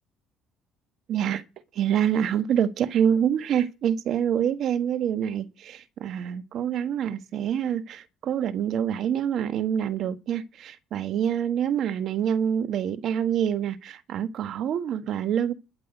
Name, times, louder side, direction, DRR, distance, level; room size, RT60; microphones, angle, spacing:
voice 1, 1.1-1.4 1.8-15.5, right 9 dB, 60° right, 1.4 m, -26 dB
12.5 x 6.0 x 9.1 m
supercardioid pair, 90°, 0 cm